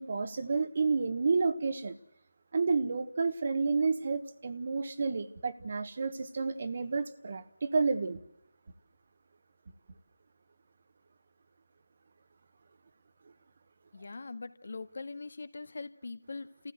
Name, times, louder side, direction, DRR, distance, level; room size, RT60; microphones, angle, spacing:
voice 1, 0.0-2.0 2.5-8.2, right 4 dB, 45° right, 1.2 m, -30 dB
voice 2, 13.9-16.7, left 3 dB, 65° left, 1.8 m, -42 dB
29.5 x 15.5 x 7.9 m
figure-of-eight pair, 160°, 0 cm